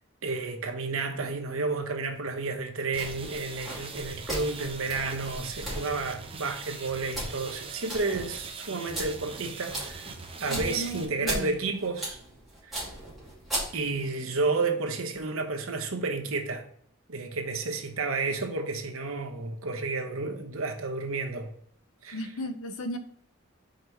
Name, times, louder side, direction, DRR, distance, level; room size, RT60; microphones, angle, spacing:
voice 1, 0.2-10.1 10.4-12.2 12.6-12.8 13.7-16.7 17.1-21.5 22.0-22.2, right 3 dB, 75° right, 1.0 m, -31 dB
sound 1, 2.9-14.1, right 1 dB, ahead, 2.4 m, -38 dB
sound 2, 2.9-11.0, right 5 dB, 25° right, 0.6 m, -42 dB
voice 2, 10.5-11.6 22.1-23.0, equal, 80° left, 0.8 m, -35 dB
5.3 x 4.6 x 3.9 m
head